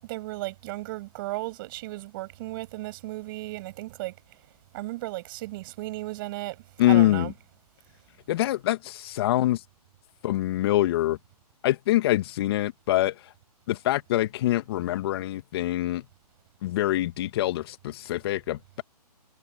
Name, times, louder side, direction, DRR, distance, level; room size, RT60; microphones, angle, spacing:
voice 1, 0.0-4.2 4.7-7.3, right 20 dB, 35° right, 8.0 m, -35 dB
voice 2, 6.8-7.3 8.3-9.6 10.2-11.2 11.6-13.1 13.7-16.0 16.6-18.8, left 15 dB, 40° left, 1.9 m, -24 dB
hypercardioid pair, 145°, 20 cm